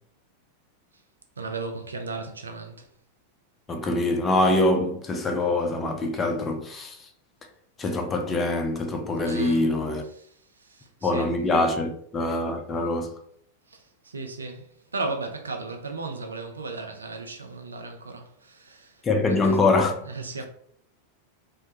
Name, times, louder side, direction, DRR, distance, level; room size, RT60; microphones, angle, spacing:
voice 1, 1.4-2.9 9.2-9.7 10.2-10.3 10.7-11.3 13.7-13.8 14.0-14.6 14.9-18.9 19.3-19.6 20.1-20.5, right 3 dB, 75° right, 0.4 m, -35 dB
voice 2, 3.7-7.0 7.8-10.0 11.0-13.1 19.0-20.0, left 2 dB, 20° left, 0.4 m, -24 dB
2.2 x 2.1 x 2.7 m
figure-of-eight pair, 90°, 0 cm